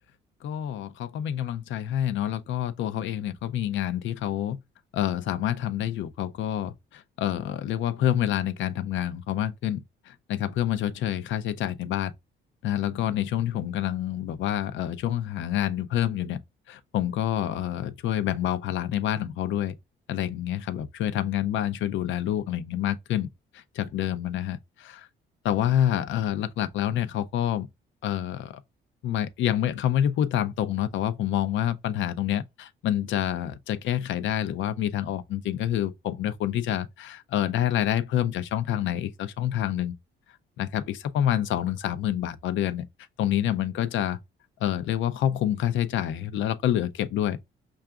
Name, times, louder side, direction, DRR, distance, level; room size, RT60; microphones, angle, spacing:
voice 1, 0.4-4.6 4.9-12.1 12.6-16.4 16.7-19.7 20.1-23.3 23.5-25.1 25.4-27.7 28.0-28.6 29.0-40.0 40.6-42.9 43.2-44.2 44.6-47.4, left 11 dB, 75° left, 0.5 m, -27 dB
5.6 x 2.4 x 2.3 m
cardioid pair, 90°, 20 cm